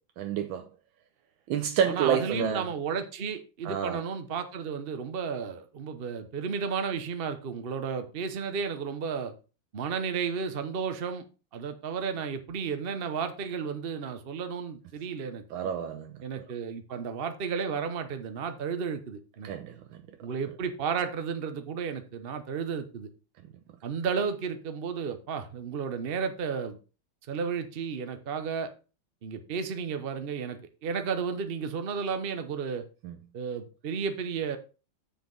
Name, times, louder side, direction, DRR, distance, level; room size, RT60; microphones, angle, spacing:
voice 1, 0.2-0.7 1.5-2.7 3.6-4.0 15.5-16.1 19.4-20.0 33.0-33.2, right 8 dB, 80° right, 1.5 m, -29 dB
voice 2, 1.9-9.3 9.7-11.2 11.5-15.4 16.2-19.5 20.2-23.1 23.8-26.8 27.3-28.7 29.2-32.9 33.3-34.6, right 6 dB, 50° right, 0.7 m, -33 dB
7.3 x 6.7 x 3.9 m
omnidirectional pair, 2.2 m